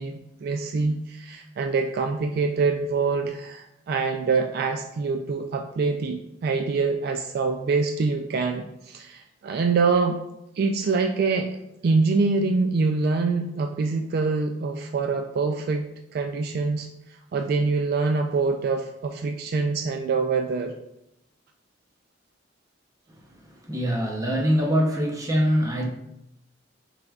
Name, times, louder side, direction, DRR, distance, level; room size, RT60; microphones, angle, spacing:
voice 1, 0.0-10.2 10.6-11.6 11.8-16.9 17.3-20.7, right 4 dB, 55° right, 5 dB, 0.3 m, -25 dB
voice 2, 23.1-25.9, equal, 20° right, 0 dB, 0.7 m, -24 dB
6.1 x 3.3 x 2.3 m, 0.82 s
head